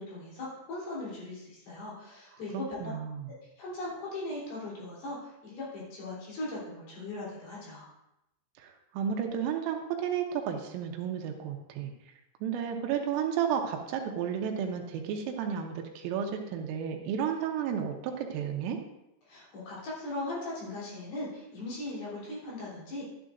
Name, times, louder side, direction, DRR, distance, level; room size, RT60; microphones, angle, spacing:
voice 1, 0.0-2.9 3.3-7.9 19.3-23.0, left 2 dB, 50° left, -7 dB, 5.1 m, -39 dB
voice 2, 2.8-3.2 8.6-11.9 12.4-18.8, right 8 dB, 85° right, 3 dB, 3.5 m, -32 dB
12.5 x 10.5 x 2.6 m, 0.89 s
omnidirectional pair, 5.9 m